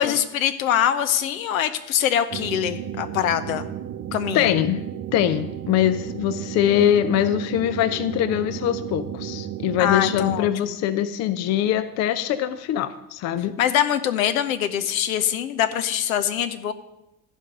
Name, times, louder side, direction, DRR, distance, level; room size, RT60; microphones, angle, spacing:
voice 1, 0.0-3.7 4.1-4.5 9.8-10.8 13.6-16.7, left 10 dB, 65° left, 10 dB, 0.9 m, -23 dB
sound 1, 2.3-10.5, right 10 dB, 30° right, 0.7 m, -33 dB
voice 2, 4.3-4.8 5.1-13.5, left 11 dB, 35° left, 13 dB, 0.6 m, -23 dB
13.5 x 5.3 x 6.5 m, 0.92 s
figure-of-eight pair, 65°, 45 cm